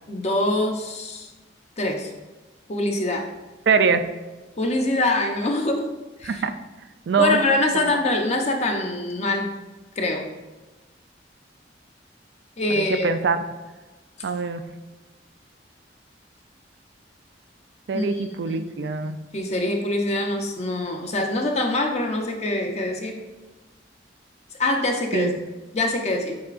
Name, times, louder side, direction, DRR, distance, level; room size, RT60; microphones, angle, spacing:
voice 1, 0.1-1.3 1.8-2.1 2.7-3.3 4.6-5.9 6.2-6.4 7.2-9.5 10.0-10.3 12.6-13.1 17.9-18.9 19.3-23.2 24.6-25.3 25.7-26.4, left 2 dB, 35° left, 2 dB, 0.7 m, -24 dB
voice 2, 3.7-4.0 6.2-6.5 7.1-7.4 12.7-13.4 14.2-14.6 17.9-19.2 25.1-25.4, right 4 dB, 70° right, 9 dB, 0.4 m, -23 dB
7.8 x 4.8 x 2.5 m, 1.2 s
head